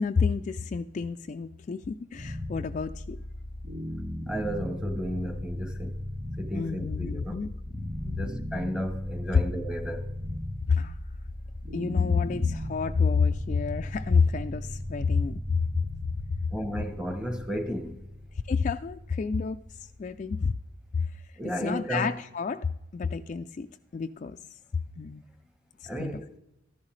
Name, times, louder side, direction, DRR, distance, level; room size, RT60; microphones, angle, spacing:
voice 1, 0.0-3.2 6.6-7.5 9.3-9.4 10.7-11.0 11.7-15.8 16.7-16.8 18.5-19.6 20.0-20.5 21.0-21.1 21.4-22.7 22.9-23.7 23.9-24.4 25.0-25.2 26.0-26.2, left 5 dB, 40° left, 0.3 m, -28 dB
sound 1, 2.1-21.2, left 1 dB, 85° right, 2.6 m, -37 dB
voice 2, 4.3-5.9 6.4-7.4 8.2-10.0 16.5-17.9 21.4-22.1 25.9-26.2, equal, 5° right, 0.9 m, -33 dB
13.5 x 11.0 x 3.2 m
head